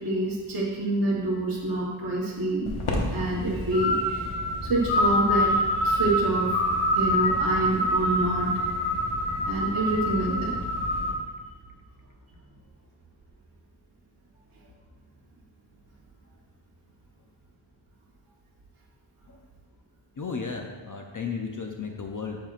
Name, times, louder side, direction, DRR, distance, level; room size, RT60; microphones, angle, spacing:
voice 1, 0.0-2.7 3.1-6.6 6.9-8.5 9.5-10.5, right 2 dB, 45° right, -6 dB, 1.1 m, -27 dB
sound 1, 2.7-11.1, equal, 80° left, 1.2 m, -26 dB
voice 2, 20.2-22.4, left 5 dB, 40° left, 2 dB, 0.5 m, -34 dB
9.0 x 7.3 x 2.4 m, 1.4 s
wide cardioid pair, 135°, 49 cm